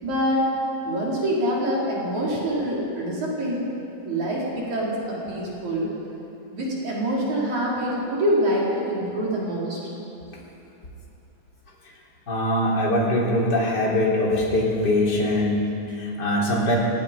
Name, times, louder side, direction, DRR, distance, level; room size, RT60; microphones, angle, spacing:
voice 1, 0.0-0.5 0.8-3.7 4.0-5.9 6.5-9.8, equal, 60° right, -5 dB, 6.1 m, -25 dB
voice 2, 12.3-16.8, left 1 dB, 30° left, -3 dB, 4.1 m, -22 dB
29.5 x 18.0 x 5.5 m, 2.9 s
omnidirectional pair, 3.7 m